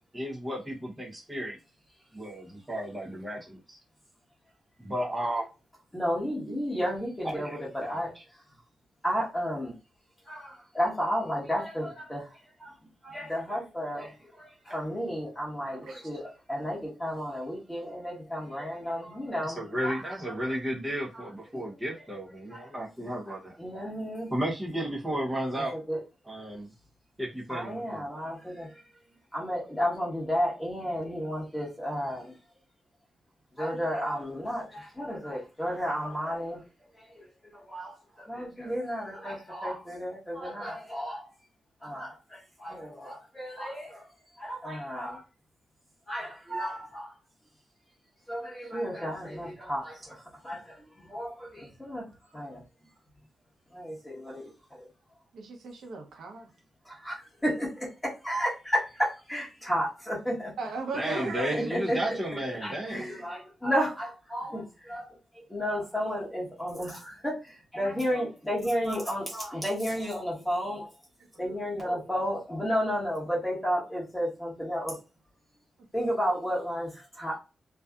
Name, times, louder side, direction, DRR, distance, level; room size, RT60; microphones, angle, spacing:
voice 1, 0.1-1.6 2.1-3.8 4.8-5.5 7.2-8.2 14.7-14.8 19.4-23.6 24.3-25.8 26.2-26.7 27.2-28.1 60.9-63.0, right 1 dB, 10° right, -4 dB, 0.7 m, -33 dB
voice 2, 5.9-8.1 9.0-9.7 10.3-12.2 12.6-12.7 13.0-19.6 19.8-20.0 20.2-20.5 22.5-22.6 23.6-24.3 25.9-26.0 27.5-28.7 29.3-32.2 33.6-36.6 37.1-41.2 41.8-44.0 44.4-45.2 46.1-47.1 48.3-50.2 50.4-52.0 52.3-52.6 53.7-54.9 56.9-57.7 58.2-60.5 61.5-62.0 62.6-65.1 65.5-67.3 67.7-70.9 71.4-75.0 75.9-76.9 77.2-77.3, equal, 5° left, -5 dB, 1.1 m, -32 dB
voice 3, 55.3-56.5 60.6-61.7 71.4-71.6, right 3 dB, 85° right, 2 dB, 0.7 m, -37 dB
2.6 x 2.3 x 2.3 m, 0.30 s
wide cardioid pair, 165°, 0 cm